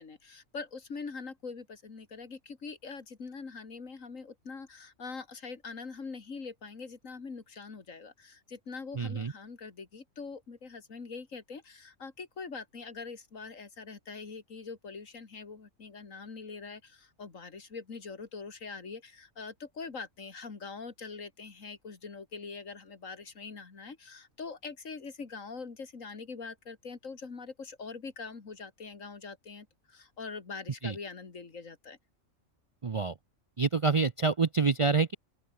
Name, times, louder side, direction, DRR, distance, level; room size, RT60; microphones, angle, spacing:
voice 1, 0.0-32.0, left 4 dB, 75° left, 2.7 m, -43 dB
voice 2, 8.9-9.3 30.8-31.0 32.8-33.1 33.6-35.1, right 4 dB, 40° right, 0.4 m, -27 dB
open air
omnidirectional pair, 1.4 m